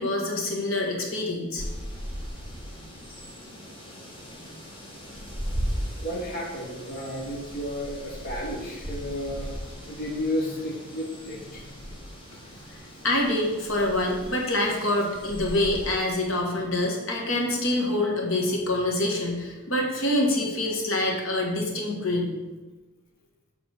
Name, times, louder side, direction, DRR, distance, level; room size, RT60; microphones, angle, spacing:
voice 1, 0.0-1.6 13.0-22.3, left 1 dB, 70° left, 0 dB, 1.5 m, -26 dB
sound 1, 1.6-16.0, equal, 25° left, 1.3 m, -38 dB
voice 2, 6.0-11.7, equal, 40° left, -3 dB, 1.2 m, -32 dB
7.4 x 3.6 x 6.5 m, 1.1 s
head